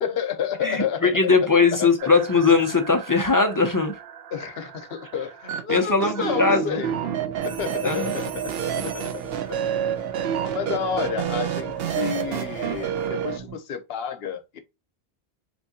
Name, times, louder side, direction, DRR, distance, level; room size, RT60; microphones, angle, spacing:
voice 1, 0.0-1.4 1.8-2.1 4.3-7.0 7.3-9.1 9.5-9.6 10.3-14.6, left 8 dB, 75° left, 0.9 m, -30 dB
voice 2, 0.6-3.9 5.7-6.8 7.8-8.0, left 4 dB, 30° left, 0.4 m, -20 dB
sound 1, 2.0-13.4, right 9 dB, 75° right, 0.8 m, -30 dB
sound 2, 6.8-13.6, right 7 dB, 20° right, 1.6 m, -41 dB
sound 3, 7.4-9.4 11.8-12.1, right 4 dB, 40° right, 1.2 m, -42 dB
3.5 x 3.0 x 2.7 m
omnidirectional pair, 1.1 m